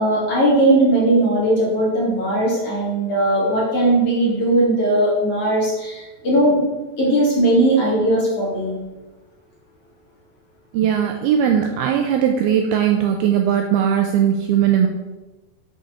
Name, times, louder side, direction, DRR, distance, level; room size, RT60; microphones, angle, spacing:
voice 1, 0.0-6.6 7.0-8.8, right 1 dB, 40° left, -6 dB, 2.9 m, -18 dB
voice 2, 10.7-14.9, right 9 dB, 85° right, 4 dB, 2.3 m, -18 dB
6.9 x 6.3 x 6.6 m, 1.1 s
omnidirectional pair, 5.0 m